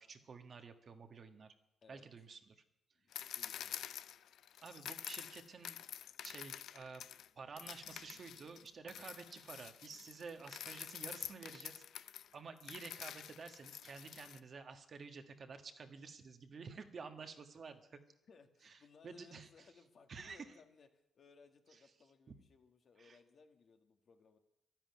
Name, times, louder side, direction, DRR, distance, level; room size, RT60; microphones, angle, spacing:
voice 1, 0.0-1.5 1.9-2.5 4.6-5.8 6.2-7.0 7.4-11.8 12.3-18.0 18.6-18.8 19.0-19.5 20.1-20.4 23.0-23.2, right 5 dB, 45° right, 6 dB, 1.5 m, -51 dB
voice 2, 2.9-3.8 18.3-20.9 21.2-24.4, left 5 dB, 50° left, 5 dB, 1.8 m, -63 dB
sound 1, 3.1-7.3 7.6-14.4, left 10 dB, 70° left, 0.5 m, -48 dB
11.5 x 10.5 x 9.6 m, 0.83 s
cardioid pair, 90°, 0 cm